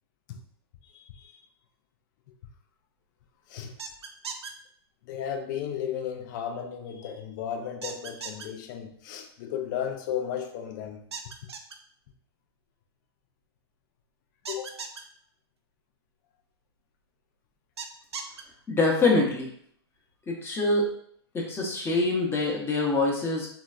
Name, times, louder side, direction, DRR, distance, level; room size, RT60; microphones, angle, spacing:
voice 1, 0.8-1.4 3.5-3.7 5.0-11.0 14.5-14.8, left 8 dB, 45° left, 6 dB, 0.5 m, -34 dB
sound 1, 3.8-4.5 7.8-8.5 11.1-11.8 14.5-15.0 17.8-18.4, right 5 dB, 75° right, 0.4 m, -37 dB
voice 2, 18.7-19.5 20.3-20.8 21.3-23.5, left 3 dB, 15° left, -1 dB, 0.9 m, -25 dB
3.9 x 2.2 x 2.4 m, 0.63 s
figure-of-eight pair, 105°, 14 cm